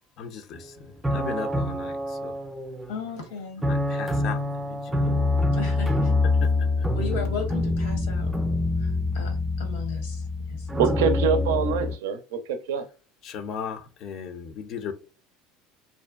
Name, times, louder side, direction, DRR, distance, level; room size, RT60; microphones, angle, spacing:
voice 1, 0.2-2.3 3.6-4.4 4.7-5.1 6.4-6.5 6.8-6.9 13.2-14.9, left 6 dB, 55° left, 0.4 m, -36 dB
sound 1, 0.6-0.7 1.0-3.1 3.6-11.9, left 2 dB, 10° right, 0.4 m, -25 dB
voice 2, 2.9-3.7 5.5-6.1 6.9-8.3 8.8-10.8, left 4 dB, 80° left, 0.8 m, -36 dB
voice 3, 10.8-12.9, right 6 dB, 80° right, 0.4 m, -25 dB
2.5 x 2.1 x 2.3 m
hypercardioid pair, 75°, 0 cm